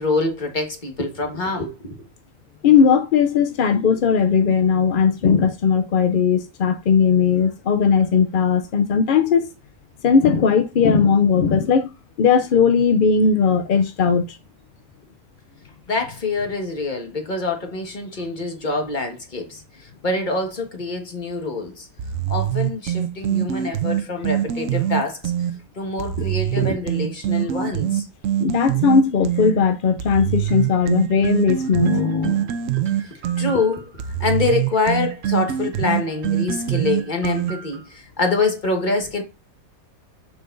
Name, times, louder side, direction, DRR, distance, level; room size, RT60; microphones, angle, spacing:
voice 1, 0.0-1.9 15.9-19.6 20.0-21.9 22.3-25.2 25.8-28.1 31.8-32.5 32.8-33.9 34.2-39.2, left 3 dB, 35° left, 1.6 m, -25 dB
voice 2, 2.6-9.5 10.0-14.4 28.4-32.0, left 6 dB, 60° left, 0.5 m, -18 dB
sound 1, 22.0-25.5 26.0-29.5 30.0-37.8, right 11 dB, 70° right, 1.0 m, -24 dB
6.8 x 6.4 x 2.6 m
omnidirectional pair, 1.5 m